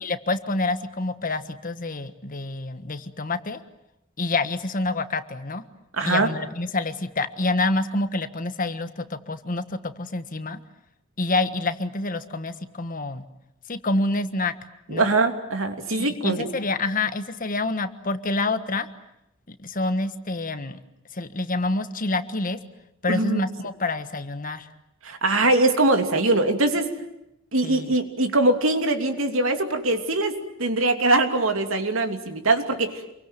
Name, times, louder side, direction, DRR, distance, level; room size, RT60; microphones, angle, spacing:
voice 1, 0.0-3.6 4.2-5.6 6.1-10.6 11.2-13.2 13.7-14.5 14.9-15.1 15.9-18.9 19.5-20.8 21.1-22.6 23.0-24.7 27.6-27.9, left 2 dB, 45° left, 10 dB, 1.5 m, -27 dB
voice 2, 5.9-6.3 14.9-16.5 23.1-23.4 25.0-26.9 27.5-33.1, right 2 dB, 90° right, 6 dB, 2.9 m, -22 dB
28.0 x 23.0 x 9.2 m, 0.85 s
head